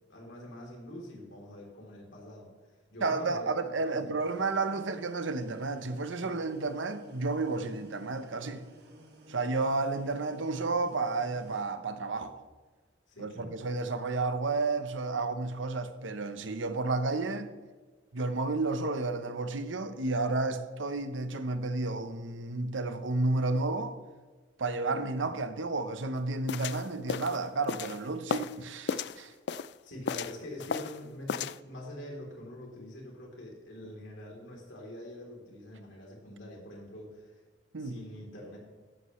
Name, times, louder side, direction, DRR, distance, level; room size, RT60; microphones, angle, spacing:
voice 1, 0.1-2.5 2.9-4.2 13.1-13.6 25.2-25.3 29.8-37.3 37.8-38.6, left 1 dB, 75° left, 3.5 m, -45 dB
voice 2, 3.0-8.6 9.3-12.4 13.2-17.5 18.1-24.0 24.6-29.3 33.8-33.9 37.7-38.0, right 3 dB, 80° right, 0.9 m, -31 dB
sound 1, 4.2-11.6, equal, 55° right, 1.7 m, -55 dB
sound 2, 26.5-28.6 28.9-29.7 30.1-31.0 31.3-31.6, left 6 dB, 60° left, 0.3 m, -34 dB
13.5 x 11.0 x 3.2 m
head